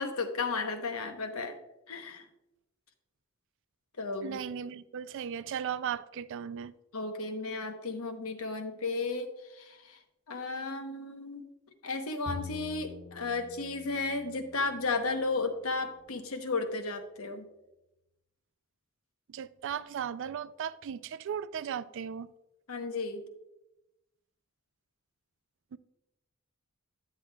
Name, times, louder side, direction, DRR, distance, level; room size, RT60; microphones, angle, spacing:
voice 1, 0.0-1.5 1.9-2.2 4.0-4.4 6.9-9.3 9.5-10.0 10.3-11.4 11.8-17.5 22.7-23.2, left 3 dB, 85° left, 1.0 m, -34 dB
voice 2, 4.2-6.7 19.3-22.3 25.7-25.8, right 8 dB, 60° right, 0.3 m, -36 dB
Bowed string instrument, 12.3-15.7, left 4 dB, 40° left, 0.6 m, -46 dB
10.0 x 7.7 x 2.3 m
head